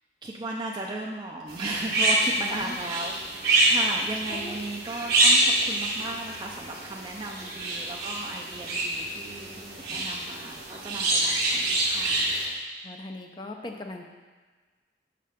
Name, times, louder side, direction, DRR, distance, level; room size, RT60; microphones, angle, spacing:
voice 1, 0.2-3.1 3.4-12.2, right 2 dB, 25° right, -1 dB, 0.5 m, -36 dB
sound 1, 1.5-12.5, right 2 dB, 55° right, 1.9 m, -26 dB
voice 2, 4.3-4.6 9.8-10.1 12.8-14.1, left 2 dB, 25° left, 3 dB, 0.6 m, -39 dB
6.7 x 5.4 x 5.1 m, 1.4 s
head